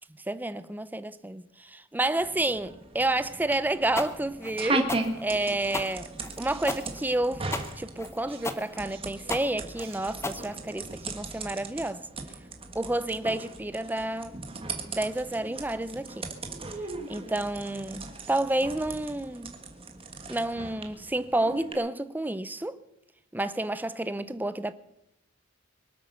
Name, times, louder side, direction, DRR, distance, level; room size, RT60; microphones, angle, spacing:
voice 1, 0.3-4.9 5.2-6.1 6.4-7.5 7.8-12.1 12.7-14.4 14.8-16.3 17.1-19.6 20.3-22.8 23.3-24.7, right 1 dB, 10° right, 0.6 m, -30 dB
sound 1, 2.2-21.7, right 2 dB, 30° right, 1.7 m, -37 dB
sound 2, 4.0-11.0, left 2 dB, 15° left, 1.0 m, -35 dB
24.0 x 8.5 x 6.9 m
head